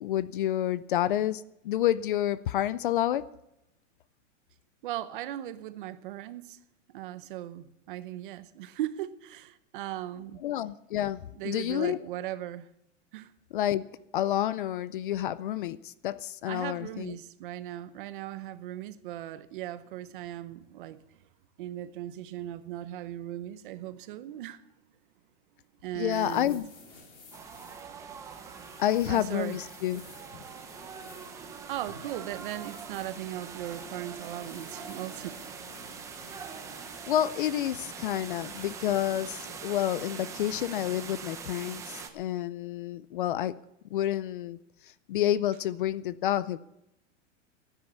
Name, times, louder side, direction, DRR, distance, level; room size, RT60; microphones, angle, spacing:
voice 1, 0.0-3.2 10.4-12.1 13.5-13.9 14.1-17.2 26.0-26.7 28.8-30.0 30.3-30.4 37.1-43.5 43.9-44.6 45.1-46.6, left 12 dB, 45° left, 0.4 m, -29 dB
voice 2, 4.8-6.6 6.9-10.4 11.4-12.7 13.1-13.3 16.4-21.0 21.6-24.6 25.8-26.6 29.1-29.6 31.7-35.4, right 13 dB, 45° right, 0.8 m, -38 dB
sound 1, 26.1-39.2, left 3 dB, 20° left, 2.7 m, -54 dB
sound 2, 27.3-42.1, right 6 dB, 10° right, 0.6 m, -43 dB
15.0 x 9.8 x 7.0 m
supercardioid pair, 165°, 37 cm